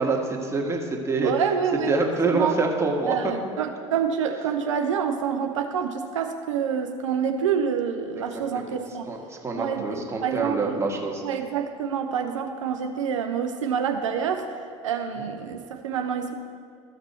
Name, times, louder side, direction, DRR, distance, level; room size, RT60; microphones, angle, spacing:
voice 1, 0.0-1.3 1.9-3.3 8.5-8.8 9.1-11.2, right 3 dB, 15° right, 0 dB, 1.7 m, -26 dB
voice 2, 1.2-2.0 2.2-2.6 3.1-9.0 9.6-10.8 11.2-14.5 14.8-16.3, right 7 dB, 85° right, 5 dB, 0.6 m, -27 dB
13.5 x 5.9 x 4.4 m, 2.1 s
hypercardioid pair, 80°, 16 cm